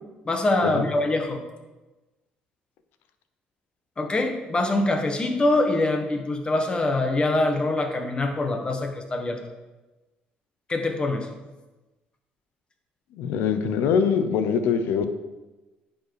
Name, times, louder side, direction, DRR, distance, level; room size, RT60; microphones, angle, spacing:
voice 1, 0.2-1.4 4.0-9.4 10.7-11.3, left 2 dB, 25° left, 4 dB, 1.5 m, -24 dB
voice 2, 13.2-15.1, left 6 dB, 80° left, 9 dB, 0.8 m, -23 dB
9.9 x 5.5 x 4.8 m, 1.1 s
cardioid pair, 100°, 4 cm